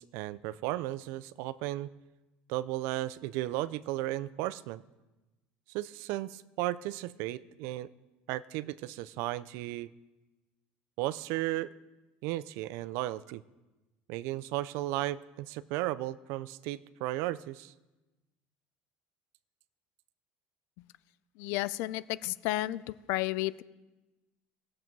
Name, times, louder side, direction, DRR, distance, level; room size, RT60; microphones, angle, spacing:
voice 1, 0.0-1.9 2.5-4.8 5.7-7.9 8.3-9.9 11.0-11.7 12.2-13.4 14.1-17.7, right 16 dB, 70° right, 18 dB, 0.4 m, -35 dB
voice 2, 21.4-23.6, left 17 dB, 70° left, 18 dB, 0.4 m, -32 dB
17.0 x 7.3 x 4.6 m, 1.1 s
cardioid pair, 160°, 4 cm